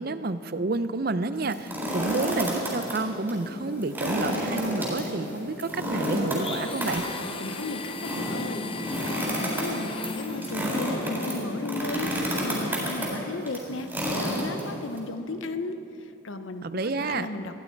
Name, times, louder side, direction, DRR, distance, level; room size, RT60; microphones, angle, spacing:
voice 1, 0.0-7.0 16.6-17.3, right 3 dB, 50° right, 12 dB, 0.6 m, -30 dB
sound 1, 1.4-3.0 3.3-3.4 3.8-15.0, equal, 10° right, 4.0 m, -30 dB
sound 2, 3.3-12.0, left 1 dB, 55° left, 5.0 m, -39 dB
Domestic sounds home sounds, 6.3-10.8, left 5 dB, 25° left, 0.6 m, -38 dB
voice 2, 7.4-16.6 17.0-17.6, left 2 dB, 80° left, 9 dB, 0.8 m, -35 dB
20.5 x 15.5 x 4.6 m, 2.9 s
head